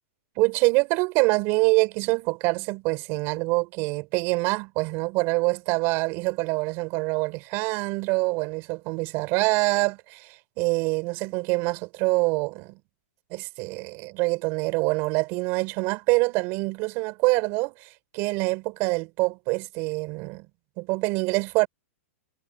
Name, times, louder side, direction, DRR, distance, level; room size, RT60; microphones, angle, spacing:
voice 1, 0.4-12.8 13.3-20.5 20.8-21.7, right 26 dB, 30° right, 5.3 m, -25 dB
supercardioid pair, 170°, 8 cm